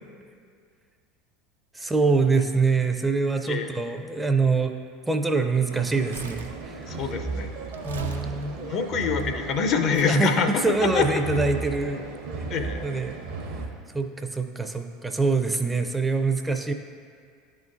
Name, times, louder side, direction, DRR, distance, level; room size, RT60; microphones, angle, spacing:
voice 1, 1.7-4.8 5.1-7.0 7.8-8.6 10.1-12.0 12.8-13.2 13.9-16.7, right 4 dB, 10° right, 6 dB, 0.4 m, -24 dB
sound 1, 5.7-13.7, right 3 dB, 65° right, 0.8 m, -35 dB
Crumpling crinkling, 5.9-9.2 9.9-10.2 11.0-11.1, right 4 dB, 85° right, 0.4 m, -41 dB
voice 2, 6.9-7.5 8.6-11.1 12.5-12.9, left 5 dB, 50° left, 7 dB, 0.5 m, -26 dB
10.5 x 3.7 x 2.5 m, 2.1 s
hypercardioid pair, 75°, 0 cm